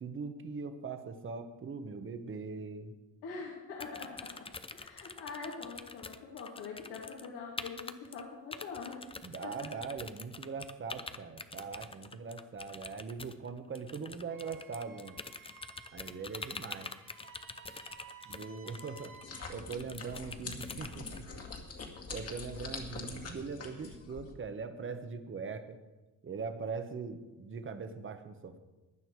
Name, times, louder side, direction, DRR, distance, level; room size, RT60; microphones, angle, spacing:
voice 1, 0.0-2.9 9.2-15.2 15.9-16.9 18.3-19.1 19.5-21.4 22.1-25.8 26.2-28.6, right 5 dB, 30° right, 8 dB, 1.2 m, -41 dB
voice 2, 3.2-8.9 9.4-9.7, left 5 dB, 80° left, -3 dB, 2.7 m, -44 dB
sound 1, 3.8-7.3 7.6-8.2 8.5-21.2, left 4 dB, 15° left, 0.5 m, -46 dB
Wind instrument woodwind instrument, 14.3-19.6, right 4 dB, 55° right, 2.5 m, -55 dB
sound 2, 19.2-24.3, left 4 dB, 40° left, 2.1 m, -44 dB
15.5 x 10.0 x 4.8 m, 1.1 s
cardioid pair, 115°, 38 cm